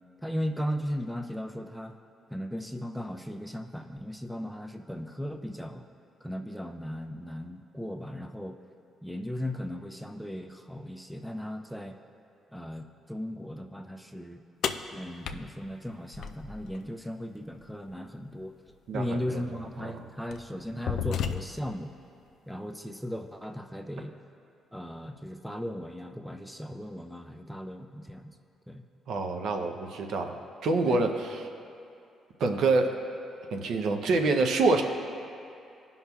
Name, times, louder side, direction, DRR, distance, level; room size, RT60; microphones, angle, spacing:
voice 1, 0.2-2.0 2.3-5.8 6.2-8.6 9.0-12.0 12.5-14.4 14.9-18.5 18.9-21.9 22.5-24.2 24.7-28.3 28.7-28.8 30.8-31.1, equal, ahead, 5 dB, 0.5 m, -37 dB
sound 1, 14.6-16.8 18.7-18.8 19.6-19.8 20.3-21.8, left 7 dB, 70° left, 0.3 m, -33 dB
voice 2, 18.9-19.2 19.8-20.0 29.1-30.4 30.6-31.5 32.4-32.9 33.5-34.8, right 3 dB, 75° right, 4 dB, 0.6 m, -26 dB
15.5 x 5.5 x 2.3 m, 2.6 s
cardioid pair, 90°, 0 cm